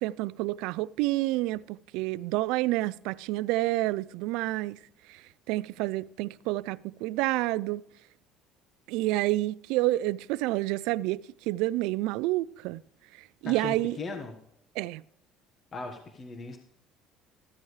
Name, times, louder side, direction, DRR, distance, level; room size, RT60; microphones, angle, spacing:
voice 1, 0.0-4.8 5.1-7.8 8.9-12.8 13.2-14.0 14.8-15.0, right 18 dB, 80° right, 0.3 m, -29 dB
voice 2, 13.4-14.3 15.7-16.6, left 3 dB, 35° left, 1.4 m, -38 dB
14.0 x 13.0 x 3.2 m
cardioid pair, 110°, 0 cm